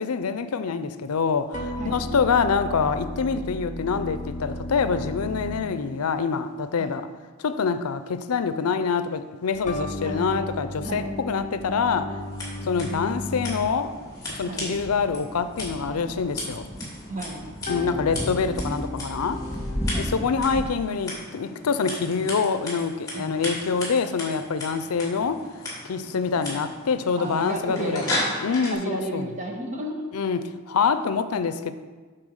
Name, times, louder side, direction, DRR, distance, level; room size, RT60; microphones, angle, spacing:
voice 1, 0.0-7.1 7.4-12.1 12.6-13.9 14.4-16.7 17.7-19.4 20.0-25.4 25.8-28.0 28.4-29.3 30.1-31.7, left 5 dB, 90° left, 11 dB, 0.5 m, -25 dB
sound 1, 1.5-6.2 9.7-14.0 17.7-20.3, left 1 dB, 35° left, 0.8 m, -34 dB
sound 2, 9.5-20.7, equal, 5° right, 0.4 m, -38 dB
voice 2, 10.0-10.4 10.8-11.1 14.4-14.7 17.1-17.4 19.8-20.1 22.1-22.3 23.1-23.5 26.4-26.5 27.2-28.1 28.7-30.1, right 1 dB, 35° right, 1 dB, 1.2 m, -33 dB
Scissors, 12.2-28.7, left 1 dB, 15° left, 2.9 m, -36 dB
8.7 x 4.5 x 6.4 m, 1.4 s
head